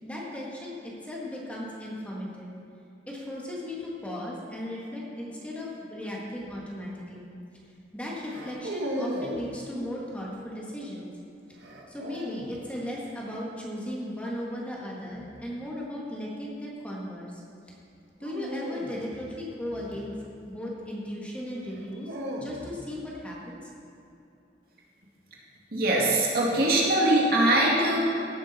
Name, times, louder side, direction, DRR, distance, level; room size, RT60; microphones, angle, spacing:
voice 1, 0.0-2.5 3.1-7.3 7.9-11.1 11.9-17.4 18.2-20.1 20.5-23.7, left 1 dB, 10° left, -4 dB, 1.8 m, -36 dB
sound 1, 6.4-6.7 8.2-9.5 11.6-12.6 15.0-15.4 18.2-20.6 21.6-22.9, equal, 85° right, 1.6 m, -37 dB
voice 2, 25.7-28.0, right 1 dB, 60° right, -4 dB, 2.4 m, -22 dB
16.5 x 8.6 x 4.4 m, 2.8 s
head